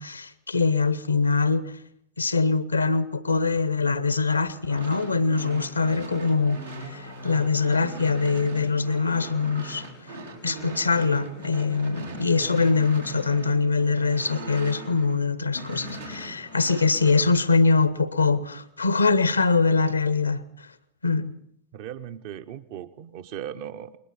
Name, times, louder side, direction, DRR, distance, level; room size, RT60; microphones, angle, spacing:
voice 1, 0.0-1.7 2.2-9.8 10.4-20.4 21.0-21.3, left 4 dB, 80° left, 0.9 m, -23 dB
sound 1, 4.5-15.2 15.5-17.4, right 1 dB, 85° right, 4.8 m, -39 dB
voice 2, 21.7-24.0, right 10 dB, 50° right, 1.0 m, -38 dB
29.5 x 21.0 x 4.2 m
figure-of-eight pair, 90°, 0 cm